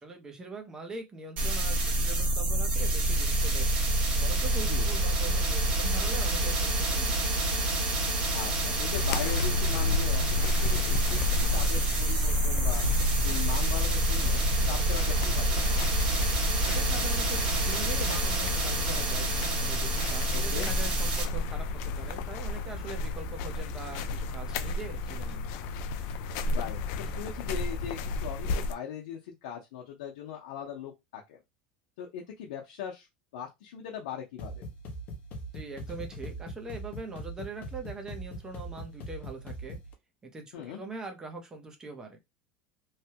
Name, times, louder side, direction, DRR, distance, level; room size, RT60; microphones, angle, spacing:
voice 1, 0.0-7.2 16.6-25.5 35.5-39.8 40.2-42.2, right 3 dB, 15° right, 0.7 m, -42 dB
sound 1, 1.4-21.2, right 1 dB, 40° right, 1.4 m, -27 dB
voice 2, 8.3-12.8 13.2-15.6 20.3-20.7 26.5-31.4 32.0-33.1 33.3-34.7 40.5-40.8, left 8 dB, 90° left, 0.7 m, -39 dB
sound 2, 8.9-28.8, left 3 dB, 60° left, 0.4 m, -32 dB
sound 3, 34.4-39.9, right 1 dB, 40° left, 0.9 m, -41 dB
3.2 x 2.2 x 2.8 m
supercardioid pair, 150°, 4 cm